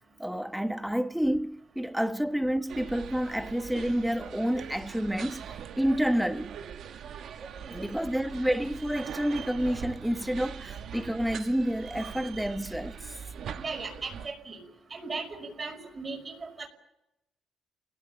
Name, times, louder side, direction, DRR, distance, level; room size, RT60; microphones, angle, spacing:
voice 1, 0.2-6.6 7.7-13.1, equal, 5° right, 1.1 m, -29 dB
sound 1, 2.7-14.3, right 8 dB, 70° right, 1.1 m, -42 dB
voice 2, 7.4-7.9 13.6-14.6 14.9-16.7, right 4 dB, 35° right, 5.5 m, -38 dB
29.5 x 17.0 x 9.0 m
cardioid pair, 90°, 0 cm